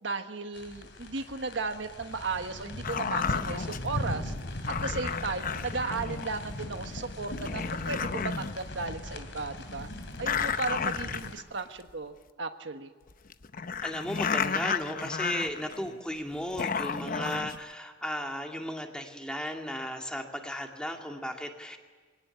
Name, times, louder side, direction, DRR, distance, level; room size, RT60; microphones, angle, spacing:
voice 1, 0.0-4.3 4.7-9.9 10.2-12.9, right 4 dB, 80° right, 7 dB, 1.3 m, -35 dB
sound 1, 0.5-11.3, left 1 dB, 75° left, 2.9 m, -39 dB
sound 2, 2.8-3.9 4.6-6.4 7.0-7.1 7.4-8.6 8.8-8.9 10.2-11.6 11.9-12.0 13.1-16.0 16.3-17.6, left 6 dB, 50° left, 0.8 m, -32 dB
voice 2, 13.8-21.8, equal, 5° left, 3 dB, 2.2 m, -35 dB
22.0 x 17.5 x 9.8 m, 1.4 s
head